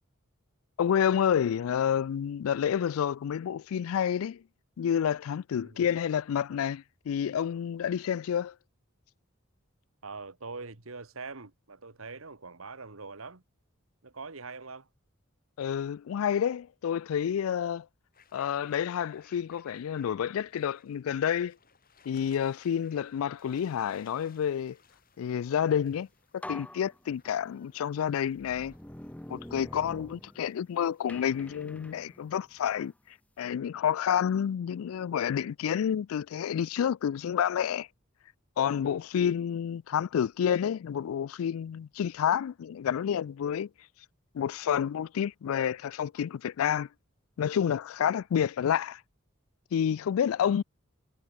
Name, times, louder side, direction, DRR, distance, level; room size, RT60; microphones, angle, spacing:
voice 1, 0.8-4.4 4.8-8.5 15.6-17.9 18.3-21.6 22.1-24.8 25.2-26.1 26.3-28.7 29.3-32.9 33.4-37.9 38.6-43.7 44.3-46.9 47.4-49.0 49.7-50.6, left 8 dB, 85° left, 0.3 m, -29 dB
voice 2, 5.6-5.9 10.0-13.4 14.0-14.9 38.8-39.0 50.5-50.6, right 4 dB, 80° right, 1.9 m, -43 dB
sound 1, 18.1-31.5, left 6 dB, 45° left, 4.8 m, -63 dB
sound 2, 25.8-26.0 26.4-27.7 28.3-30.7 31.1-32.9, left 1 dB, 5° left, 0.7 m, -46 dB
head